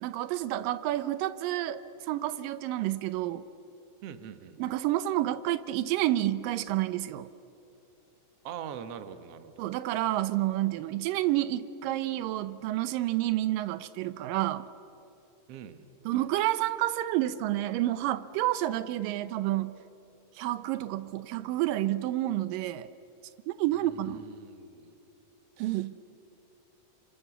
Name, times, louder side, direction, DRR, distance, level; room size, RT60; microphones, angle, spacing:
voice 1, 0.0-3.4 4.6-7.3 9.6-14.7 16.1-19.8 20.4-22.9 23.5-24.2 25.6-25.9, right 14 dB, 90° right, 14 dB, 2.5 m, -29 dB
voice 2, 4.0-4.6 8.4-9.7 15.5-15.9 23.8-24.9 25.6-25.9, right 8 dB, 60° right, 9 dB, 1.9 m, -43 dB
30.0 x 26.5 x 7.1 m, 2.9 s
omnidirectional pair, 3.8 m